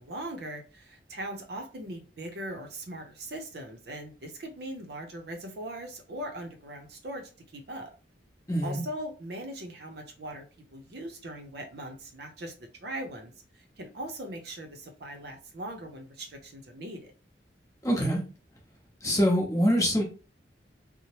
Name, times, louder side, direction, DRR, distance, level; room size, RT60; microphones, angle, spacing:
voice 1, 0.0-7.9 8.6-10.4 10.7-17.1, right 1 dB, 60° right, 0.6 m, -40 dB
voice 2, 8.5-8.8 17.8-18.2 19.0-20.0, equal, 20° left, 0.8 m, -24 dB
2.8 x 2.0 x 2.9 m
head